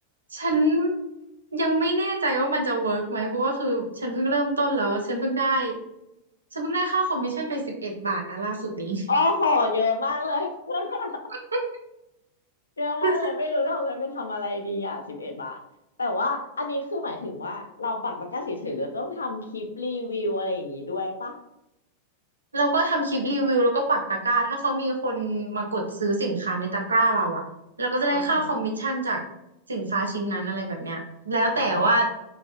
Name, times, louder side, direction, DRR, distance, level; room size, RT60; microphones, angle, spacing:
voice 1, 0.3-0.9 1.5-5.8 6.5-9.1 13.0-13.1 22.5-27.4 27.8-29.2 29.7-31.0 31.3-32.1, right 2 dB, 75° right, 2 dB, 0.5 m, -25 dB
voice 2, 9.1-11.1 12.8-15.6 16.0-21.4 28.1-28.6 31.5-32.0, left 2 dB, 75° left, 4 dB, 0.4 m, -28 dB
2.6 x 2.0 x 2.3 m, 0.87 s
figure-of-eight pair, 90°, 0 cm